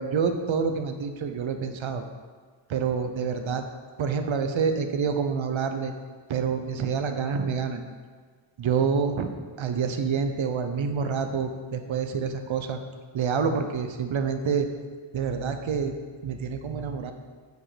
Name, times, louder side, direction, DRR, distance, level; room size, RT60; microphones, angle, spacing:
voice 1, 0.0-2.0 2.7-3.6 4.0-5.9 6.3-7.8 8.6-9.3 9.6-12.8 13.1-14.7 15.1-15.9 16.2-17.1, right 6 dB, 65° right, 7 dB, 0.7 m, -27 dB
9.2 x 5.0 x 4.8 m, 1.5 s
wide cardioid pair, 165°, 50 cm